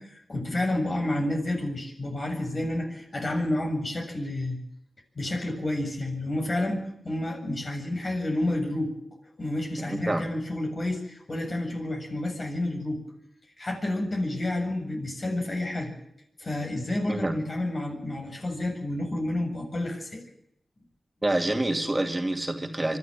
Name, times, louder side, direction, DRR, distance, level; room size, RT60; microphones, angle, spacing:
voice 1, 0.0-4.6 5.2-8.9 9.4-13.0 13.6-15.9 16.4-20.2, left 1 dB, 45° left, 3 dB, 7.2 m, -30 dB
voice 2, 9.8-10.2 17.1-17.4 21.2-23.0, right 1 dB, 20° right, 5 dB, 2.5 m, -27 dB
24.5 x 12.5 x 8.9 m, 0.77 s
cardioid pair, 60°, 0 cm